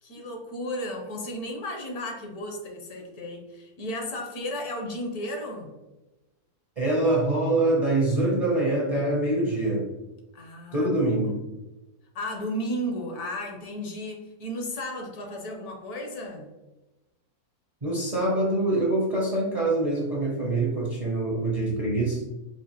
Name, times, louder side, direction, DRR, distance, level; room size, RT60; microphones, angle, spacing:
voice 1, 0.0-5.7 10.3-10.9 12.1-16.5, equal, 75° left, 2 dB, 1.3 m, -34 dB
voice 2, 6.8-9.9 10.7-11.4 17.8-22.2, right 2 dB, 40° right, -4 dB, 0.5 m, -24 dB
4.8 x 2.5 x 2.8 m, 1.1 s
omnidirectional pair, 1.6 m